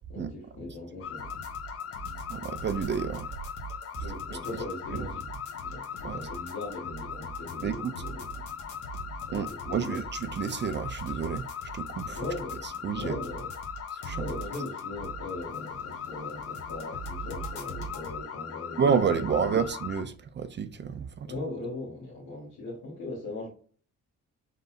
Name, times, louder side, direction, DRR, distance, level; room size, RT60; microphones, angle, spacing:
voice 1, 0.1-1.3 4.0-5.3 5.6-8.4 9.3-10.0 12.2-13.5 14.1-19.6 21.2-23.5, left 2 dB, 85° left, 1.7 m, -39 dB
sound 1, 1.0-20.0, left 8 dB, 50° left, 0.8 m, -39 dB
sound 2, 1.2-18.2, right 3 dB, 70° left, 1.1 m, -43 dB
voice 2, 2.3-3.3 4.9-5.1 6.0-6.2 7.6-8.0 9.3-11.5 11.7-12.2 12.8-13.2 13.9-14.3 18.8-21.3, right 6 dB, 35° right, 0.4 m, -29 dB
3.9 x 3.9 x 2.7 m
cardioid pair, 90°, 30 cm